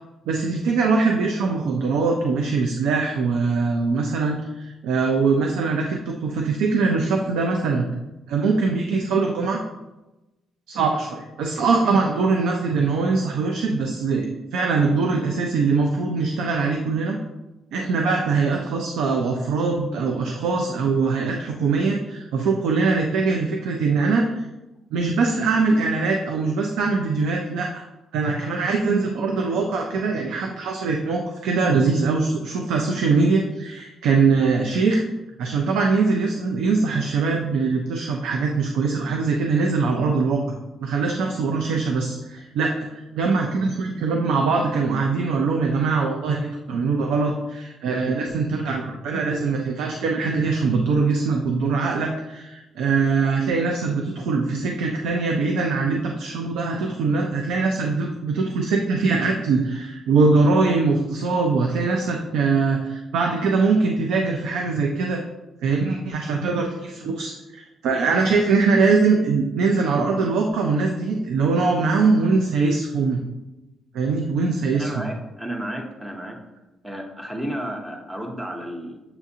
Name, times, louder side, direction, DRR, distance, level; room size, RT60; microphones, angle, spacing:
voice 1, 0.3-7.9 8.3-9.6 10.7-14.3 14.5-17.2 17.7-24.4 24.9-27.8 28.1-35.0 35.4-40.4 40.8-65.2 65.6-73.2 73.9-75.1, right 4 dB, 85° right, 2 dB, 0.4 m, -22 dB
voice 2, 74.7-76.4 76.8-79.0, equal, 10° right, 1 dB, 0.9 m, -32 dB
6.8 x 2.4 x 2.7 m, 1.0 s
cardioid pair, 90°, 0 cm